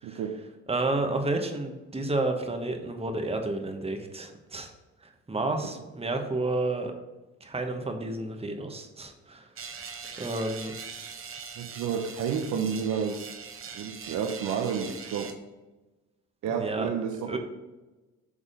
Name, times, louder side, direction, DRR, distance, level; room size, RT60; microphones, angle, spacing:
voice 1, 0.0-0.4 5.4-5.5 10.9-11.2 11.6-13.3 13.7-15.3 16.4-17.4, right 7 dB, 70° right, 3 dB, 0.7 m, -31 dB
voice 2, 0.7-4.7 5.3-6.9 7.4-9.5 10.2-10.7 16.5-16.9 17.2-17.4, right 2 dB, 20° right, 4 dB, 1.0 m, -30 dB
sound 1, 9.6-15.3, right 6 dB, 45° right, 1.0 m, -42 dB
6.5 x 3.6 x 4.9 m, 1.1 s
cardioid pair, 90°, 30 cm